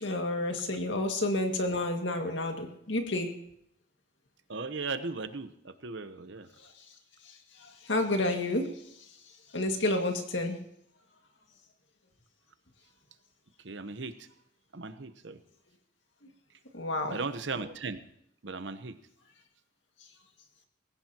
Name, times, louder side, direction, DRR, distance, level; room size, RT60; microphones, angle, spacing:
voice 1, 0.0-3.3 7.6-8.7 9.5-10.6 16.7-17.2, left 2 dB, 75° left, 3 dB, 2.1 m, -30 dB
voice 2, 4.5-6.5 13.6-14.1 14.7-15.4 17.1-18.0 18.4-19.0, right 4 dB, 70° right, 11 dB, 0.9 m, -37 dB
20.0 x 16.5 x 3.0 m, 0.75 s
head